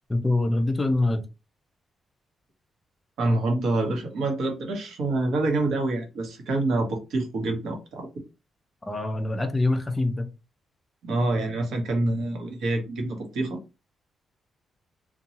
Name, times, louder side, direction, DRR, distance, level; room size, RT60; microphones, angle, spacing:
voice 1, 0.1-1.2 8.9-10.3, left 2 dB, 15° left, 0.4 m, -24 dB
voice 2, 3.2-8.1 11.0-13.6, right 2 dB, 70° right, 0.9 m, -26 dB
2.7 x 2.2 x 2.8 m
wide cardioid pair, 180°, 0 cm